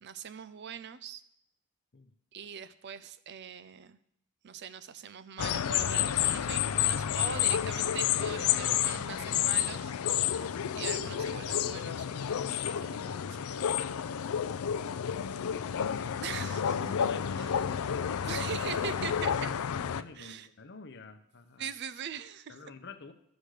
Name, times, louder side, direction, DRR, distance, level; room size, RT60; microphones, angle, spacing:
voice 1, 0.0-1.2 2.3-4.0 4.4-10.5 10.8-13.5 16.2-16.8 17.4-17.6 18.2-19.5 20.1-20.5 21.6-22.6, right 7 dB, 50° right, 14 dB, 0.5 m, -42 dB
sound 1, 5.4-20.0, left 9 dB, 85° left, 0.4 m, -30 dB
voice 2, 14.7-15.1 15.4-16.2 16.7-18.5 19.3-21.7 22.5-23.1, left 3 dB, 55° left, 8 dB, 0.8 m, -48 dB
11.5 x 5.1 x 6.5 m, 0.75 s
head